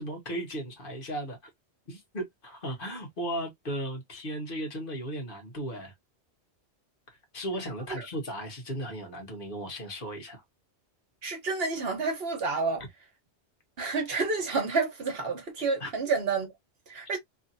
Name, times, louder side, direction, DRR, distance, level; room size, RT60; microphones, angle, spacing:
voice 1, 0.0-1.5 1.9-5.9 7.3-10.4 15.8-15.9, right 1 dB, 50° left, 1.3 m, -36 dB
voice 2, 11.2-12.8 13.8-16.5 16.9-17.2, right 4 dB, 60° right, 1.3 m, -29 dB
3.1 x 2.8 x 2.5 m
omnidirectional pair, 1.1 m